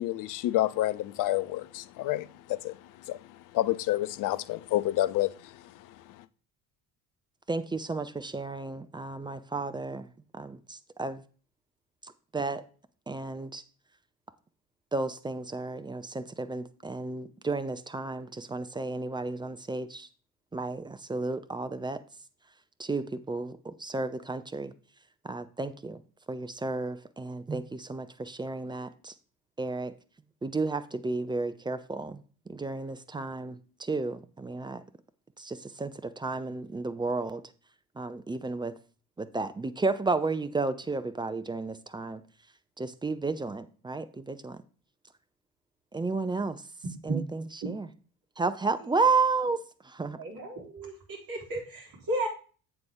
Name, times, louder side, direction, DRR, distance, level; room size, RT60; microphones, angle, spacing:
voice 1, 0.0-2.8 3.1-3.2 3.5-5.5, left 15 dB, 40° left, 0.6 m, -29 dB
voice 2, 7.5-10.1 10.3-11.2 12.0-12.6 13.1-13.6 14.9-20.1 20.5-22.0 22.8-24.7 25.2-26.0 26.3-29.1 29.6-29.9 30.4-32.2 32.5-34.8 35.4-37.4 38.0-38.7 39.2-42.2 42.8-44.6 45.9-46.6 47.0-47.9 48.4-50.2, right 3 dB, 10° right, 0.4 m, -32 dB
voice 3, 50.2-52.3, right 2 dB, 45° right, 3.6 m, -34 dB
7.7 x 7.1 x 3.7 m
figure-of-eight pair, 50°, 50 cm